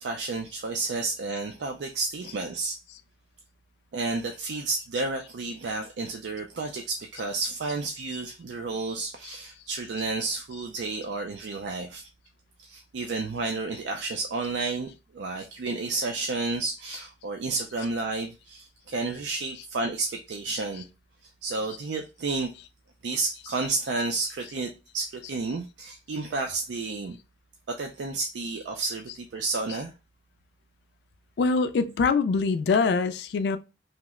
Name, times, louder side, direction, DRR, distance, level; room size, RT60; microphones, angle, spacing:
voice 1, 0.0-2.8 3.9-12.1 12.6-20.8 21.4-22.5 23.0-27.2 27.7-29.9, right 3 dB, 80° right, 0.4 m, -31 dB
voice 2, 31.4-33.6, left 4 dB, 65° left, 0.3 m, -24 dB
2.8 x 2.1 x 3.5 m
head